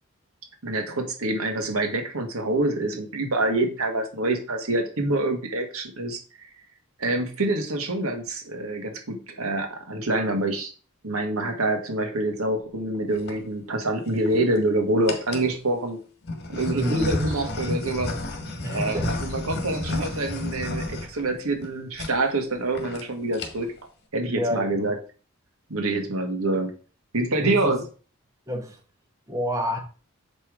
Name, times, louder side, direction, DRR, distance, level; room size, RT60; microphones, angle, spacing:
voice 1, 0.6-6.2 7.0-10.7 11.0-16.0 16.5-18.1 18.7-23.7 24.1-24.9 25.7-26.7 27.1-27.8, right 2 dB, 85° right, 1.9 m, -26 dB
sound 1, 12.9-13.4 14.1-14.6 15.1-15.5 16.2-21.7 22.0-22.1 22.4-22.5 22.7-23.0 23.3-23.8, left 2 dB, 50° left, 1.6 m, -31 dB
voice 2, 16.7-17.2 18.6-19.1 24.3-24.9 27.4-27.8 28.5-28.8 29.3-29.8, equal, 15° right, 1.2 m, -28 dB
7.3 x 5.4 x 5.0 m
head